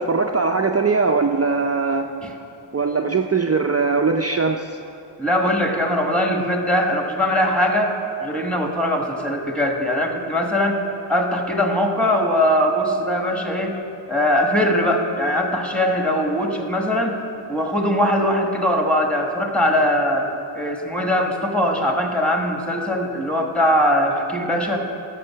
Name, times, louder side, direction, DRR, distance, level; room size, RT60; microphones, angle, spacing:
voice 1, 0.0-2.1 2.7-4.7, right 4 dB, 30° right, 3 dB, 0.5 m, -20 dB
voice 2, 5.2-7.9 8.2-10.8 11.1-13.8 14.1-17.2 17.5-20.3 20.5-24.8, equal, ahead, 2 dB, 1.3 m, -21 dB
13.0 x 6.8 x 5.6 m, 2.7 s
wide cardioid pair, 85°, 49 cm